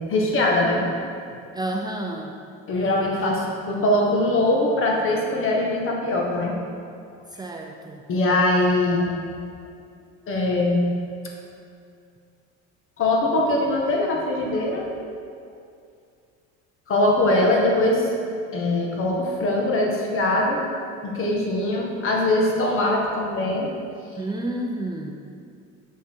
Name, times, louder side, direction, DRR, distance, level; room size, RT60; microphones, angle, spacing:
voice 1, 0.1-0.8 2.7-6.6 8.1-9.1 10.3-10.9 13.0-14.9 16.9-18.1 18.5-20.6 21.0-23.7, left 1 dB, 45° left, -1 dB, 1.7 m, -22 dB
voice 2, 1.5-2.3 7.3-8.0 24.2-25.1, right 1 dB, 15° right, 1 dB, 0.5 m, -30 dB
7.0 x 6.5 x 4.7 m, 2.4 s
cardioid pair, 110°, 30 cm